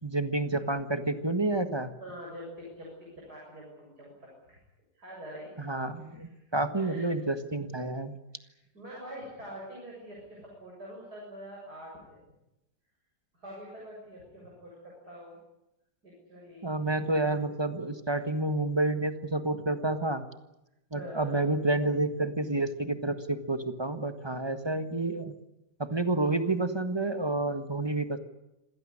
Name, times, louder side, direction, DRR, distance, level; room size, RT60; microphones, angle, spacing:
voice 1, 0.0-1.9 5.6-8.1 16.6-20.2 20.9-25.3 25.8-28.2, right 2 dB, 15° right, 9 dB, 1.4 m, -29 dB
voice 2, 2.0-4.6 4.9-5.5 6.1-6.2 6.7-7.1 8.4-12.2 13.3-15.4 16.0-16.7 20.9-21.4, equal, 60° right, -3 dB, 8.0 m, -45 dB
27.0 x 16.5 x 10.0 m, 0.92 s
omnidirectional pair, 1.9 m